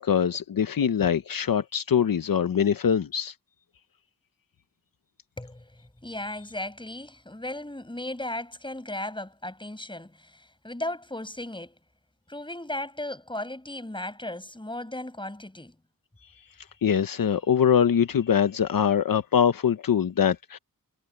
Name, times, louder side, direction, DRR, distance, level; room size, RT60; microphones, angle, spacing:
voice 1, 0.0-3.3 16.8-20.6, left 8 dB, 75° left, 0.8 m, -23 dB
voice 2, 5.4-11.8 12.3-15.8, left 1 dB, 15° left, 7.5 m, -36 dB
wide cardioid pair, 115°, 35 cm